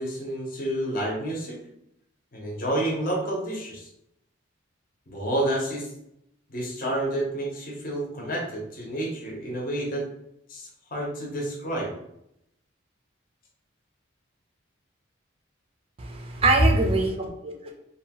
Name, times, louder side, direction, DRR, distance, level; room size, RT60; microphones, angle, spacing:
voice 1, 0.0-1.6 2.3-3.9 5.1-5.9 6.5-10.1 10.5-11.9, right 1 dB, 45° left, -2 dB, 0.7 m, -29 dB
voice 2, 16.0-17.7, right 3 dB, 30° right, 1 dB, 0.4 m, -25 dB
2.7 x 2.2 x 2.8 m, 0.80 s
head